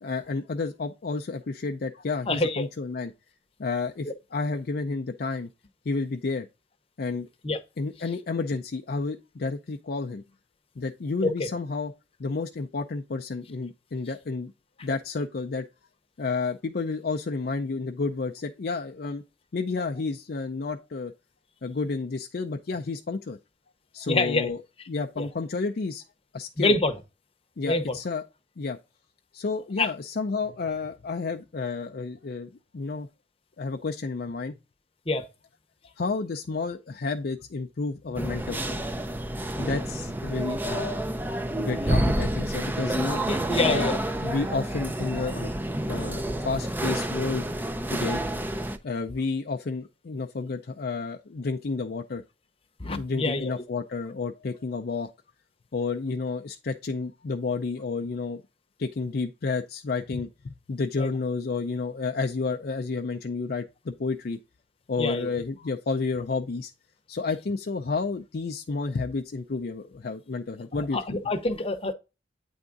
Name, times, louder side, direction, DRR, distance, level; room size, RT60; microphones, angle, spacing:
voice 1, 0.0-3.1 3.6-5.5 5.9-6.5 7.0-7.3 7.8-10.2 10.8-11.9 12.2-14.5 14.8-15.7 16.2-19.2 19.5-21.1 21.6-23.4 23.9-24.6 24.9-26.0 26.3-26.8 27.6-28.2 28.6-28.8 29.3-33.1 33.6-34.5 36.0-38.9 39.6-41.0 41.6-43.2 43.6-45.5 45.9-47.4 47.9-48.2 48.8-52.2 53.0-55.1 55.7-58.4 58.8-64.4 64.9-66.7 67.1-71.2, left 4 dB, 50° left, 0.4 m, -31 dB
voice 2, 2.3-2.7 7.4-7.6 11.2-11.5 24.1-24.5 25.2-25.3 26.6-26.9 27.6-27.9 29.8-29.9 35.1-35.3 43.3-44.0 52.8-53.6 61.0-61.1 65.0-65.3 70.9-71.9, left 2 dB, 30° left, 0.8 m, -26 dB
sound 1, 38.2-48.8, right 1 dB, 10° right, 0.4 m, -29 dB
8.7 x 3.6 x 3.9 m
head